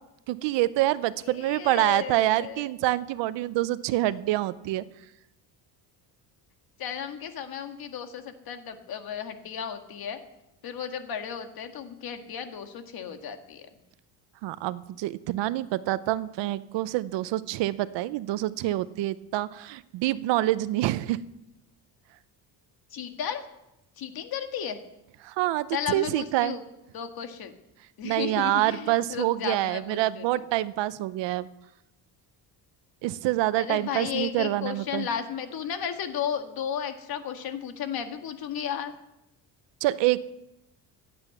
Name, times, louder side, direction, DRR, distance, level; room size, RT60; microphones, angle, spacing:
voice 1, 0.3-4.8 14.4-21.2 25.2-26.6 28.0-31.5 33.0-35.1 39.8-40.2, right 15 dB, 70° right, 16 dB, 0.8 m, -26 dB
voice 2, 1.2-2.7 6.8-10.2 10.6-13.7 22.9-23.4 24.0-24.8 25.7-26.6 26.9-27.5 28.0-30.3 33.5-38.9, left 8 dB, 55° left, 6 dB, 1.8 m, -34 dB
16.0 x 8.9 x 7.2 m, 0.89 s
cardioid pair, 125°, 44 cm